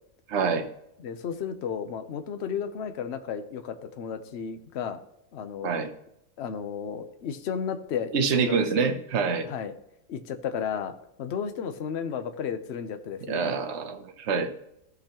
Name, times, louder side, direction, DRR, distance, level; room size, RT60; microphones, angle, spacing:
voice 1, 0.3-0.7 5.6-5.9 8.1-9.5 13.3-14.5, right 5 dB, 55° right, 7 dB, 1.1 m, -26 dB
voice 2, 1.0-5.0 5.3-5.8 6.4-8.6 9.4-9.7 10.1-10.9 11.2-13.5, left 7 dB, 55° left, 9 dB, 0.9 m, -33 dB
14.5 x 5.5 x 2.9 m, 0.82 s
omnidirectional pair, 1.5 m